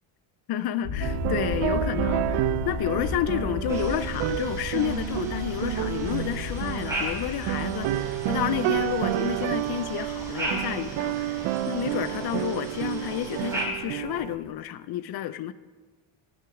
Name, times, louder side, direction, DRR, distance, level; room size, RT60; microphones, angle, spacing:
voice 1, 0.5-15.5, left 11 dB, 50° left, 0.5 m, -30 dB
sound 1, 0.8-14.5, left 4 dB, 90° left, 2.7 m, -36 dB
sound 2, 1.0-14.4, right 14 dB, 75° right, 0.6 m, -30 dB
sound 3, 3.7-13.6, right 1 dB, 5° right, 3.2 m, -38 dB
18.0 x 6.3 x 4.9 m
cardioid pair, 160°, 49 cm